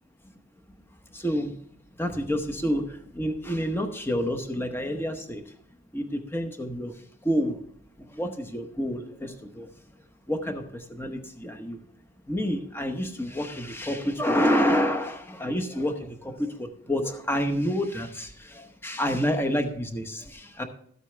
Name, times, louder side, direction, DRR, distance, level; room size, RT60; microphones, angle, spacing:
voice 1, 1.1-1.6 2.0-5.5 5.9-7.6 8.0-9.7 10.3-11.8 12.3-20.6, equal, 10° left, 6 dB, 0.8 m, -28 dB
13.0 x 8.2 x 3.3 m, 0.65 s
head